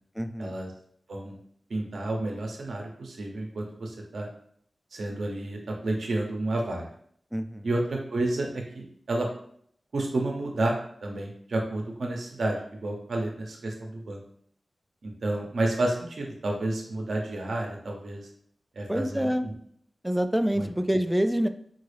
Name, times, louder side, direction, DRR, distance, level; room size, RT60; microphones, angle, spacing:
voice 1, 0.2-0.6 7.3-7.7 18.9-19.4 20.0-21.5, equal, 5° right, 9 dB, 0.3 m, -26 dB
voice 2, 1.7-4.3 4.9-6.9 7.6-9.3 9.9-14.2 15.0-18.2 18.8-19.5 20.5-20.7, right 2 dB, 80° right, 1 dB, 0.7 m, -30 dB
3.8 x 2.3 x 3.2 m, 0.64 s
cardioid pair, 45°, 0 cm